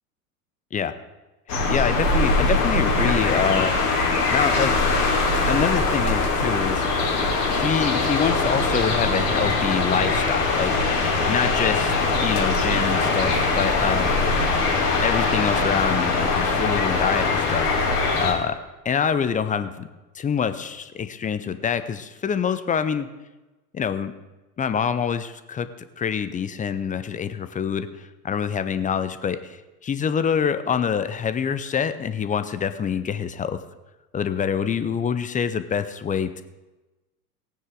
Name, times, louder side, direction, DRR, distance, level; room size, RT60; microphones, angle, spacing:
sound 1, 1.5-18.3, left 3 dB, 70° left, 2.7 m, -22 dB
voice 1, 1.5-3.7 4.3-4.7 5.5-6.8 7.5-11.9 12.2-14.3 15.0-17.7 18.2-18.6 18.8-19.9 20.1-23.1 23.7-24.1 24.6-25.7 26.0-33.6 34.1-36.4, left 7 dB, 15° left, 11 dB, 0.6 m, -26 dB
17.5 x 9.4 x 3.9 m, 1.1 s
figure-of-eight pair, 80°, 47 cm